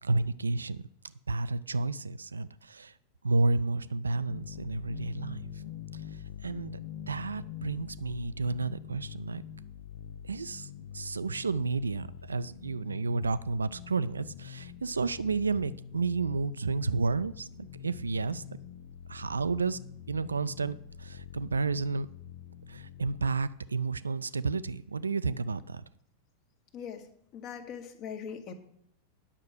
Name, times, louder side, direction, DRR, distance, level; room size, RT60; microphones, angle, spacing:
voice 1, 0.0-0.8 1.3-2.9 3.2-5.4 6.4-6.8 7.1-9.4 10.2-17.5 17.8-18.4 19.1-19.8 20.1-22.1 22.7-25.8, right 3 dB, 75° right, 16 dB, 0.4 m, -31 dB
sound 1, 4.3-23.3, left 9 dB, 55° left, 0.6 m, -45 dB
voice 2, 27.3-28.5, left 7 dB, 40° left, 7 dB, 1.5 m, -40 dB
9.9 x 6.5 x 6.4 m, 0.71 s
figure-of-eight pair, 90°, 0 cm